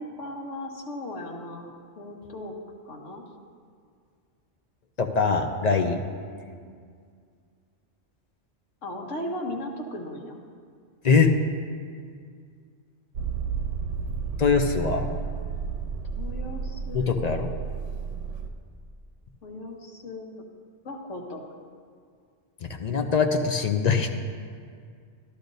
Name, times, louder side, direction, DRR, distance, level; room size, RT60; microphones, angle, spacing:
voice 1, 0.0-1.7 1.9-2.6 2.8-3.2 5.8-6.8 8.8-10.4 16.1-17.2 19.4-20.4 20.8-21.4, left 1 dB, 80° left, 1 dB, 1.5 m, -37 dB
voice 2, 5.0-6.0 11.0-11.3 14.4-15.1 16.9-17.5 22.7-24.1, left 5 dB, 45° left, 4 dB, 0.6 m, -22 dB
Motor vehicle (road), 13.1-18.5, right 6 dB, 80° right, 1.1 m, -32 dB
13.5 x 12.0 x 2.7 m, 2.1 s
omnidirectional pair, 1.2 m